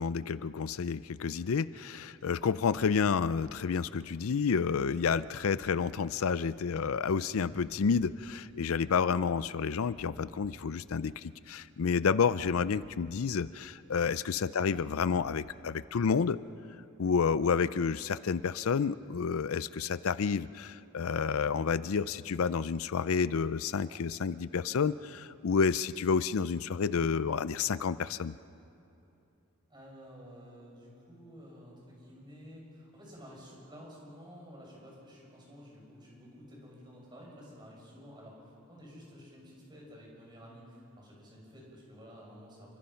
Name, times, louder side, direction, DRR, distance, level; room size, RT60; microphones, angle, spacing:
voice 1, 0.0-16.4 17.0-28.3, left 6 dB, 75° left, 16 dB, 0.5 m, -30 dB
sound 1, 8.5-9.3 9.9-11.7 12.3-14.1 14.7-16.5, equal, 25° left, 7.4 m, -58 dB
voice 2, 29.7-42.8, equal, 20° right, -3 dB, 6.9 m, -51 dB
29.5 x 24.5 x 5.8 m, 2.8 s
head